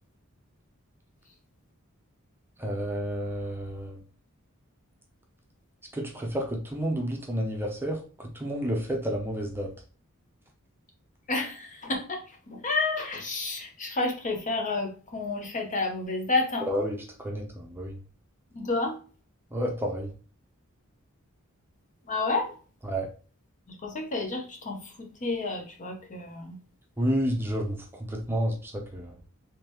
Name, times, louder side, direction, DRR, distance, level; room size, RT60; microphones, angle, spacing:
voice 1, 2.6-4.0 5.9-8.0 8.3-9.7 16.7-17.4 17.7-17.9 19.5-20.1 22.8-23.1 27.0-27.8 28.1-29.2, equal, 10° right, 1 dB, 0.7 m, -30 dB
voice 2, 11.3-16.7 18.6-19.0 22.1-22.6 23.7-26.6, left 3 dB, 35° left, 2 dB, 0.8 m, -30 dB
3.6 x 3.2 x 3.0 m, 0.38 s
head